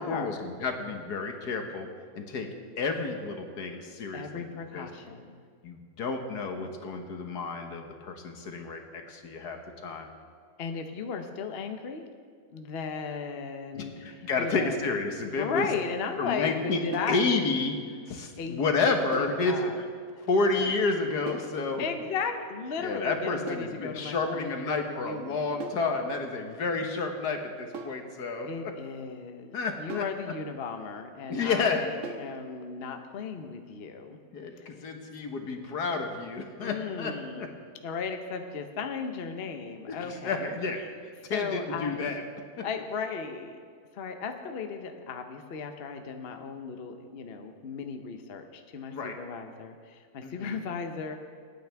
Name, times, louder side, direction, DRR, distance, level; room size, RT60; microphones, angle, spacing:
voice 1, 0.0-1.9 2.1-2.5 2.8-4.5 4.7-4.9 5.6-10.1 13.7-15.7 16.2-17.8 18.1-19.6 20.2-21.9 22.8-28.7 29.5-30.0 31.3-31.8 34.3-37.5 39.9-42.2 42.6-42.7 48.9-49.2 50.2-50.5, left 4 dB, 70° left, 4 dB, 1.7 m, -30 dB
voice 2, 4.1-5.4 10.6-12.0 12.5-14.8 15.3-17.2 18.4-19.8 20.6-20.7 21.8-25.6 28.5-34.2 34.6-34.9 36.6-37.4 37.8-40.4 40.8-40.9 41.3-42.1 42.6-43.5 43.9-51.2, left 5 dB, 45° left, 6 dB, 0.9 m, -36 dB
sound 1, 16.9-17.2 19.1-19.4 21.3-21.6 23.5-23.8 25.6-25.9 27.7-28.1 29.9-30.2 32.0-32.3, right 4 dB, 50° right, 1.4 m, -40 dB
26.5 x 9.3 x 3.5 m, 2.1 s
omnidirectional pair, 1.8 m